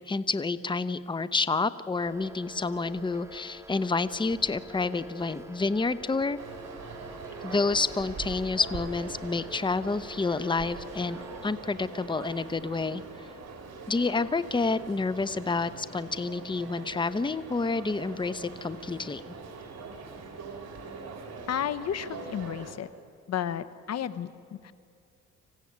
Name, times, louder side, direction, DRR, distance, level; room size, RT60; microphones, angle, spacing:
voice 1, 0.0-6.4 7.4-13.3 13.9-19.2, left 3 dB, 15° left, 14 dB, 0.9 m, -29 dB
sound 1, 2.0-11.5, equal, 10° right, 1.8 m, -47 dB
sound 2, 6.4-22.7, right 4 dB, 60° right, 4.5 m, -43 dB
voice 2, 21.5-22.9 23.3-24.7, left 9 dB, 60° left, 14 dB, 1.1 m, -32 dB
26.0 x 16.0 x 9.5 m, 2.4 s
cardioid pair, 90°, 30 cm